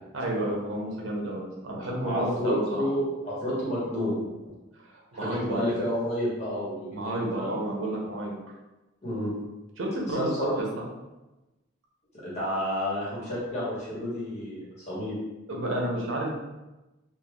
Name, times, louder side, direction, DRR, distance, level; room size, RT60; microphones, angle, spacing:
voice 1, 0.1-2.9 5.1-5.6 6.9-8.3 9.8-10.3 15.5-16.4, right 1 dB, 80° right, -2 dB, 0.7 m, -30 dB
voice 2, 2.0-4.2 5.1-7.5 9.0-9.3 10.1-10.5 12.2-15.2, equal, 35° left, -8 dB, 1.2 m, -30 dB
3.3 x 2.4 x 2.3 m, 1.1 s
head